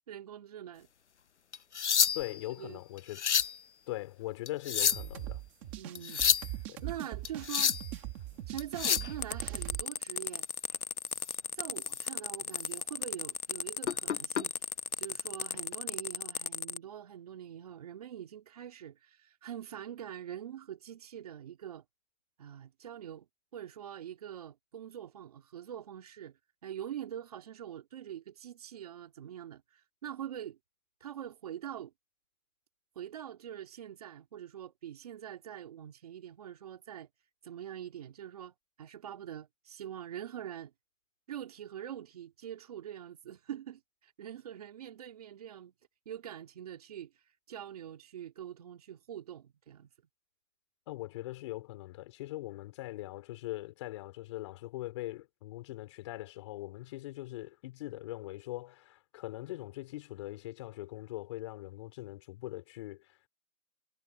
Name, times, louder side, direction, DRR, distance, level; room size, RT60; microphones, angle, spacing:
voice 1, 0.1-0.9 2.6-2.8 5.8-7.8 8.5-10.4 11.5-14.5 15.0-21.8 22.4-23.3 23.5-30.6 31.0-31.9 33.0-37.1 37.4-40.7 41.3-45.7 46.1-49.9, right 10 dB, 25° right, 2.4 m, -44 dB
sound 1, 1.5-2.4 3.0-3.6 4.5-5.2 6.0-6.5 7.2-7.9 8.6-9.1 11.2-11.3 11.9-12.1 12.5-12.7 13.8-14.4 15.5-15.7, left 7 dB, 55° left, 0.8 m, -29 dB
voice 2, 2.1-3.2 3.9-5.4 6.7-6.8 50.9-63.2, left 17 dB, 20° left, 4.2 m, -41 dB
sound 2, 4.9-9.8, right 14 dB, 5° right, 1.1 m, -41 dB
sound 3, 9.2-16.8, left 7 dB, 90° left, 1.3 m, -36 dB
hypercardioid pair, 175°, 43 cm